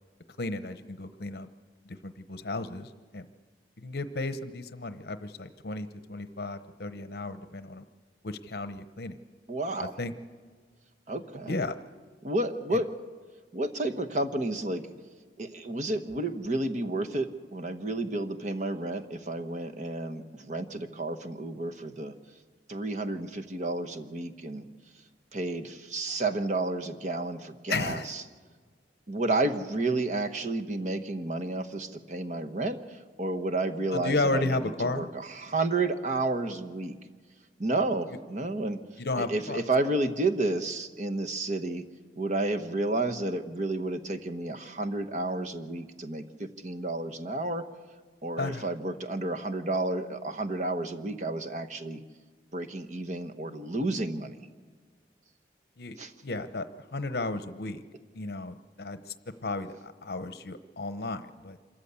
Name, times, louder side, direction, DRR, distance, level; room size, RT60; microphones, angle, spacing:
voice 1, 0.4-1.5 1.8-3.3 3.8-7.8 8.2-9.2 9.8-10.1 11.5-11.8 12.7-12.8 27.7-28.1 33.9-35.1 39.0-39.6 48.4-48.7 55.8-56.0 56.2-56.7 56.9-57.8 58.1-59.1 59.4-61.6, left 2 dB, 60° left, 10 dB, 0.9 m, -33 dB
voice 2, 9.5-10.0 11.1-11.6 12.2-12.9 13.5-14.9 15.4-22.1 22.7-24.7 25.3-28.2 29.1-34.6 34.9-37.0 37.6-38.8 39.2-41.8 42.2-47.7 48.2-52.0 52.5-54.4 56.0-56.1, right 2 dB, 45° right, 7 dB, 1.1 m, -31 dB
26.5 x 14.0 x 8.2 m, 1.5 s
head